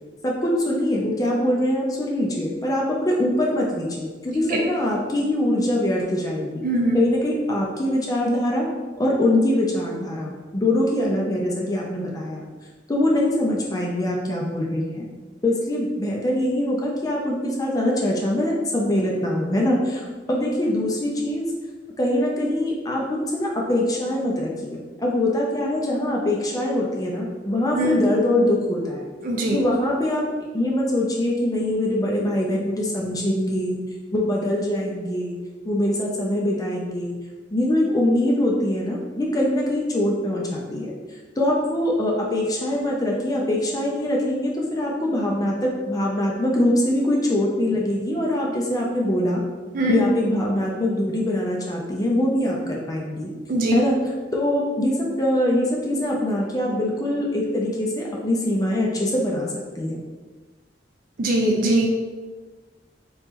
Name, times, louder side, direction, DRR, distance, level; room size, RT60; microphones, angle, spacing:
voice 1, 0.2-6.6 6.9-8.7 9.0-12.5 12.9-15.1 15.4-21.4 22.0-29.0 29.5-30.2 30.5-33.8 34.1-35.4 35.7-37.1 37.5-40.9 41.4-49.4 49.9-53.3 53.7-60.0, left 1 dB, 20° left, -2 dB, 0.4 m, -23 dB
voice 2, 6.6-7.0 27.7-27.9 29.2-29.6 49.7-50.0 53.5-53.7 61.2-61.9, right 1 dB, 50° right, 0 dB, 0.5 m, -21 dB
3.0 x 2.9 x 3.5 m, 1.4 s
head